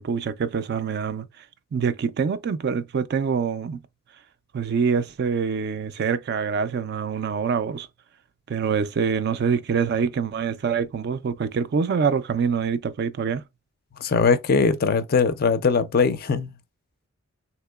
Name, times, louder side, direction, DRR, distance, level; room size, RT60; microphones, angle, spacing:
voice 1, 0.0-1.4 1.7-3.8 4.5-7.9 8.5-13.4, right 6 dB, 50° right, 0.3 m, -25 dB
voice 2, 14.0-16.5, left 5 dB, 45° left, 0.4 m, -21 dB
3.6 x 2.8 x 2.3 m
head